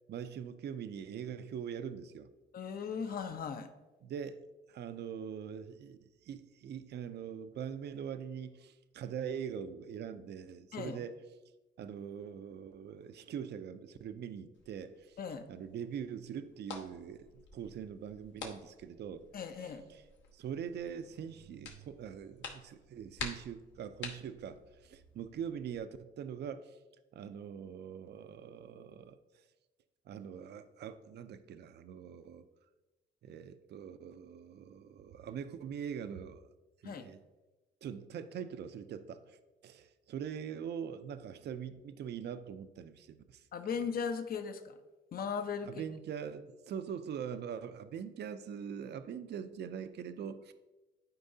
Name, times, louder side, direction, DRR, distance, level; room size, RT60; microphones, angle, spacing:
voice 1, 0.1-2.3 4.0-4.4 4.7-11.2 11.8-15.2 15.5-17.3 17.5-19.3 19.6-20.0 20.3-26.8 27.1-29.2 30.1-32.5 33.2-36.5 36.8-37.2 37.8-39.4 39.6-43.4 45.7-50.5, right 8 dB, 55° right, 11 dB, 0.5 m, -43 dB
voice 2, 2.5-3.7 10.7-11.0 15.2-15.5 19.3-19.8 36.8-37.1 43.5-44.8 45.1-45.7, left 6 dB, 50° left, 8 dB, 0.7 m, -37 dB
sound 1, 14.5-25.8, left 4 dB, 70° left, 1.3 m, -50 dB
11.5 x 4.7 x 2.7 m, 1.1 s
cardioid pair, 90°, 20 cm